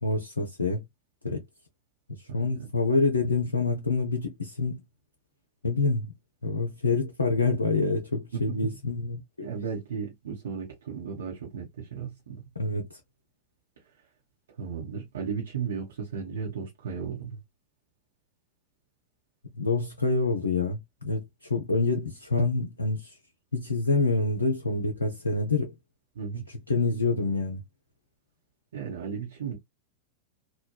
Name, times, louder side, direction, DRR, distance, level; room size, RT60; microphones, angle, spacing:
voice 1, 0.0-0.8 1.2-1.4 2.1-4.8 5.6-6.1 6.4-9.5 12.6-13.0 19.6-23.1 23.5-25.7 26.7-27.6, left 3 dB, 80° left, 0.5 m, -27 dB
voice 2, 2.3-2.7 8.3-8.7 9.4-12.4 14.6-17.4 26.2-26.4 28.7-29.6, right 6 dB, 65° right, 0.9 m, -35 dB
3.1 x 2.2 x 2.2 m
figure-of-eight pair, 90°, 0 cm